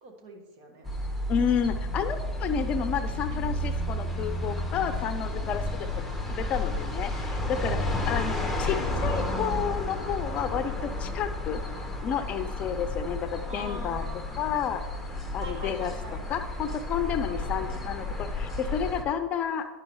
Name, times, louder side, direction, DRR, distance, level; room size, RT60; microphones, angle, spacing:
voice 1, 0.0-0.9 8.1-8.4 13.5-14.6 15.4-16.4 17.3-17.9, right 2 dB, 50° right, 3 dB, 1.5 m, -44 dB
sound 1, 0.9-19.0, left 1 dB, ahead, 1.3 m, -32 dB
voice 2, 1.3-5.9 6.3-11.6 12.0-14.0 14.4-14.8 15.3-15.9 16.3-19.7, left 8 dB, 40° left, 10 dB, 0.6 m, -31 dB
11.5 x 4.8 x 3.1 m, 1.3 s
hypercardioid pair, 100°, 3 cm